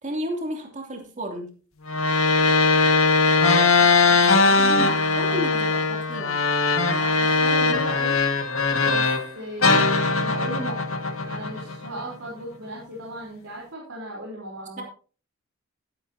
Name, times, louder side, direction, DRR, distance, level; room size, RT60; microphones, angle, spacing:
voice 1, 0.0-1.5 3.9-4.1 4.3-6.4 14.8-14.9, equal, 35° right, 2 dB, 2.9 m, -32 dB
sound 1, 1.9-9.3 9.6-12.0, left 4 dB, 85° left, 1.8 m, -20 dB
voice 2, 3.8-4.9 5.3-5.8 6.9-8.2 8.8-9.0 9.4-10.9 11.2-14.8, right 1 dB, 75° right, -4 dB, 3.9 m, -37 dB
14.0 x 11.5 x 2.8 m, 0.38 s
head